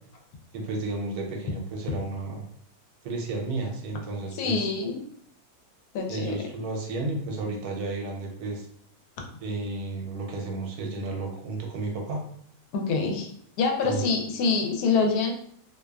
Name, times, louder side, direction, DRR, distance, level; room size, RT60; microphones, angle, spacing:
voice 1, 0.5-2.4 3.0-4.7 6.1-8.7 9.4-12.2 13.8-14.1, right 3 dB, 80° right, 1 dB, 1.1 m, -32 dB
voice 2, 4.3-5.0 5.9-6.3 12.7-13.3 13.6-15.3, left 4 dB, 80° left, 2 dB, 1.1 m, -25 dB
2.7 x 2.3 x 2.2 m, 0.64 s
omnidirectional pair, 1.6 m